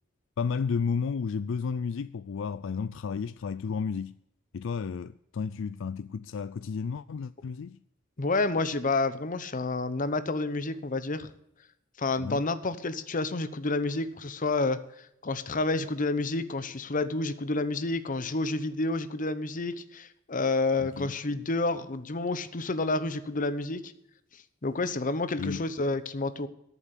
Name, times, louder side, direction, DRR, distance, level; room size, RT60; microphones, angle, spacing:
voice 1, 0.4-4.2 4.5-7.8 12.2-12.4 20.8-21.1 25.4-25.6, left 5 dB, 65° left, 0.4 m, -32 dB
voice 2, 8.2-11.3 12.0-14.8 15.2-23.9 24.6-26.5, left 3 dB, 40° left, 0.9 m, -29 dB
13.5 x 7.1 x 8.2 m
head